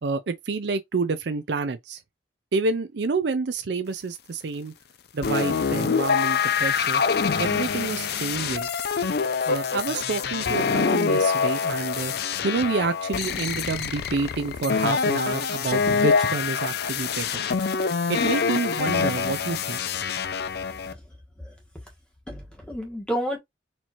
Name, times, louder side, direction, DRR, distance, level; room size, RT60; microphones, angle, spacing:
voice 1, 0.0-2.0 2.5-4.7 5.1-7.0 7.4-8.7 9.5-12.1 12.4-17.4 18.1-19.8, right 3 dB, 60° right, 0.5 m, -28 dB
sound 1, 5.2-20.9, left 5 dB, 55° left, 0.4 m, -25 dB
voice 2, 22.3-23.4, equal, 5° left, 1.4 m, -31 dB
4.4 x 2.7 x 2.9 m
head